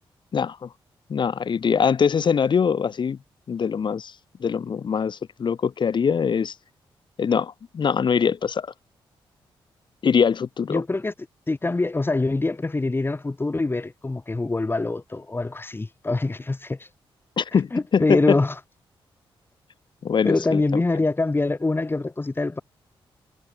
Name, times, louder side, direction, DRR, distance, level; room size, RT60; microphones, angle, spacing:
voice 1, 0.3-0.7 1.1-3.2 3.5-4.1 4.4-6.5 7.2-8.7 10.0-10.8 17.4-18.4 20.0-21.0, left 6 dB, 55° left, 2.3 m, -23 dB
voice 2, 10.7-11.1 11.5-16.9 17.7-18.5 20.2-22.6, left 2 dB, 25° left, 6.9 m, -24 dB
cardioid pair, 85°, 9 cm